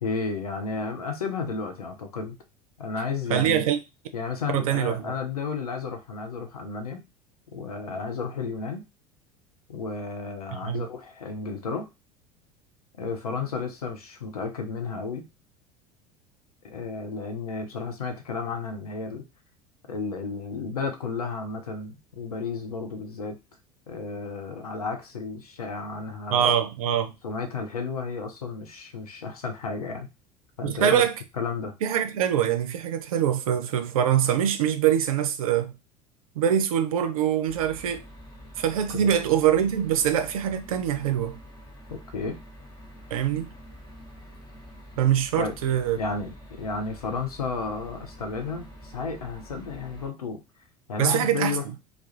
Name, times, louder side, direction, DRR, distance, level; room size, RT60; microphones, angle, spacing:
voice 1, 0.0-2.4 2.8-3.7 4.1-7.0 7.5-8.8 9.7-11.9 13.0-15.3 16.6-19.2 19.9-23.4 23.9-26.5 27.2-30.1 30.6-31.1 31.4-31.7 38.9-39.1 41.9-42.4 45.4-45.6 45.9-50.4 50.9-51.6, left 4 dB, 75° left, 0.6 m, -32 dB
voice 2, 3.3-3.8 4.5-5.1 10.5-10.9 26.3-27.1 30.6-31.1 31.8-35.7 36.4-38.0 38.6-41.4 43.1-43.5 45.0-46.0 51.0-51.6, right 9 dB, 65° right, 0.4 m, -24 dB
sound 1, 37.5-50.1, equal, 20° left, 0.8 m, -46 dB
2.3 x 2.0 x 2.9 m
figure-of-eight pair, 70°, 19 cm